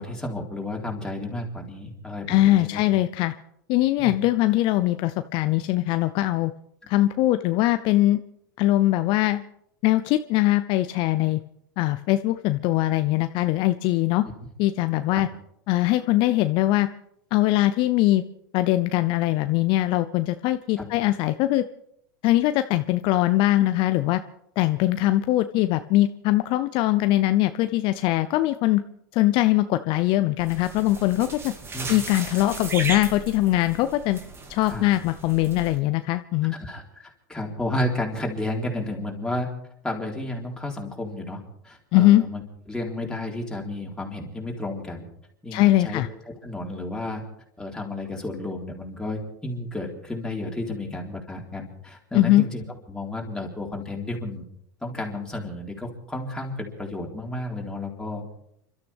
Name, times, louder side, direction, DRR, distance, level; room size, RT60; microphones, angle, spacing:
voice 1, 0.0-2.8 4.0-4.1 15.1-15.2 20.8-20.9 31.7-32.0 34.7-34.9 36.6-39.5 39.8-42.4 42.7-45.1 45.4-47.2 47.6-54.4 54.8-58.4, left 1 dB, 5° left, -1 dB, 4.0 m, -32 dB
voice 2, 2.3-3.3 3.7-6.5 6.9-8.2 8.6-9.4 9.8-11.4 11.8-14.2 14.6-15.3 15.7-16.9 17.3-18.2 18.5-21.6 22.2-24.2 24.6-28.8 29.1-31.5 31.9-34.2 34.5-36.5 41.9-42.2 45.5-46.1 52.1-52.4, left 16 dB, 50° left, 11 dB, 0.6 m, -21 dB
sound 1, 30.4-35.8, right 3 dB, 25° right, 2.6 m, -36 dB
30.0 x 12.5 x 3.6 m, 0.74 s
hypercardioid pair, 100°, 10 cm